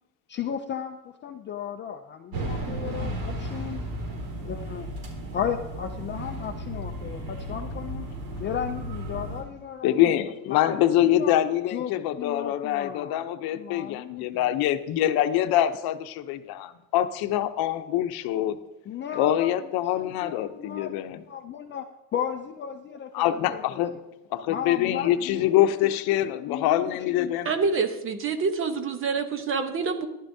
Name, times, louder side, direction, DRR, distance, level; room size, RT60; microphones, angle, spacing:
voice 1, 0.3-3.8 4.4-4.9 5.3-8.1 8.4-10.1 10.5-11.3 11.7-13.2 13.5-14.6 18.9-19.7 20.0-21.0 21.3-21.9 22.1-23.8 24.5-25.7 26.5-27.3, left 8 dB, 30° left, 0.4 m, -35 dB
sound 1, 2.3-9.4, right 1 dB, 80° right, 3.9 m, -34 dB
voice 2, 9.8-18.6 19.1-21.2 23.1-24.0 24.3-27.5, left 12 dB, 75° left, 0.8 m, -25 dB
voice 3, 27.4-30.1, right 5 dB, 35° right, 0.9 m, -26 dB
14.0 x 11.5 x 2.7 m
cardioid pair, 160°, 37 cm